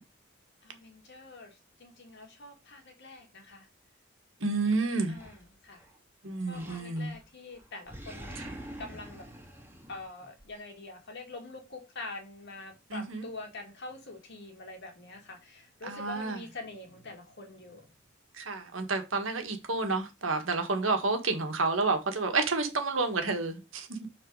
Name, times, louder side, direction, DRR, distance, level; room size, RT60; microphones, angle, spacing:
voice 1, 0.6-3.7 5.1-5.8 6.4-8.4 8.8-9.3 9.9-17.9, left 2 dB, 60° left, 2.3 m, -45 dB
voice 2, 4.4-5.2 6.2-7.2 8.4-8.5 12.9-13.2 15.8-16.4 18.4-24.0, right 3 dB, 75° right, 1.6 m, -30 dB
Animal, 5.1-6.0 6.5-7.3 7.5-10.5, right 1 dB, 10° right, 2.0 m, -46 dB
6.4 x 4.4 x 4.7 m
head